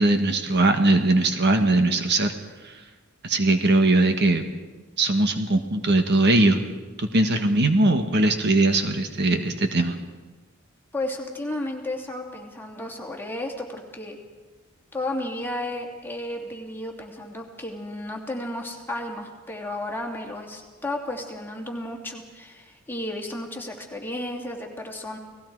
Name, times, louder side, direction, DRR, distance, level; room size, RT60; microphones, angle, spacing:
voice 1, 0.0-2.3 2.6-2.8 3.2-4.5 5.0-6.6 7.0-10.0, right 2 dB, 55° right, 6 dB, 1.5 m, -20 dB
voice 2, 10.9-14.2 14.9-25.2, left 1 dB, 10° left, 1 dB, 2.6 m, -33 dB
30.0 x 19.0 x 4.8 m, 1.3 s
head